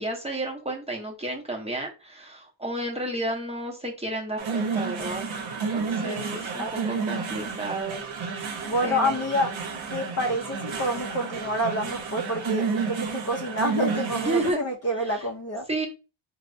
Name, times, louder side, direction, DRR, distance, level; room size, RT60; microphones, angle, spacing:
voice 1, 0.0-8.0 8.3-9.2 14.2-14.6 15.0-15.2 15.7-15.9, right 1 dB, 15° right, 0.7 m, -32 dB
sound 1, 4.4-14.5, right 5 dB, 80° right, 0.7 m, -31 dB
voice 2, 6.0-7.2 8.6-9.5 9.9-15.7, equal, 35° left, 0.5 m, -28 dB
3.2 x 2.0 x 2.5 m
wide cardioid pair, 100°, 46 cm